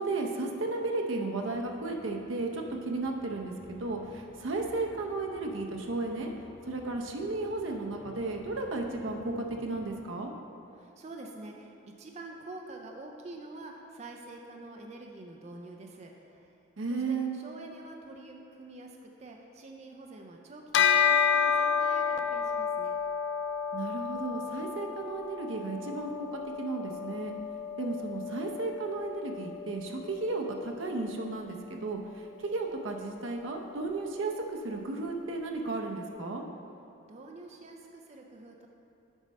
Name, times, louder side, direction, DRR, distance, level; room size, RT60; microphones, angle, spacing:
voice 1, 0.0-6.3 6.7-10.3 16.8-17.3 23.7-27.3 27.8-36.4, right 3 dB, 70° right, 2 dB, 0.7 m, -34 dB
sound 1, 1.3-9.9, left 1 dB, 75° left, 1.2 m, -54 dB
voice 2, 10.7-16.5 16.9-23.0 37.1-38.7, right 2 dB, 35° right, 1 dB, 0.4 m, -47 dB
Bell, 20.7-30.4, left 7 dB, 60° left, 0.3 m, -30 dB
7.2 x 5.2 x 4.1 m, 2.7 s
head